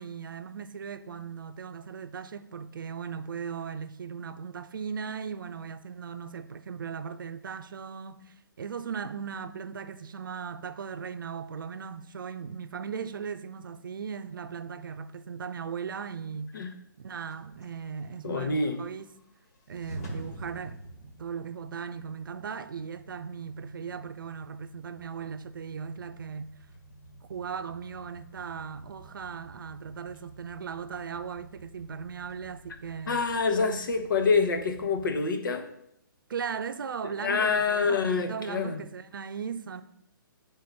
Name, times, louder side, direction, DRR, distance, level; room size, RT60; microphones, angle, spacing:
voice 1, 0.0-16.7 17.0-19.1 19.7-26.5 27.2-33.2 36.3-39.8, right 6 dB, 65° right, 0.6 m, -38 dB
sound 1, 17.3-35.2, right 1 dB, 45° left, 1.6 m, -49 dB
voice 2, 18.2-18.8 33.1-35.7 37.2-38.8, left 4 dB, 65° left, 1.1 m, -26 dB
9.0 x 3.7 x 5.3 m
figure-of-eight pair, 130°, 12 cm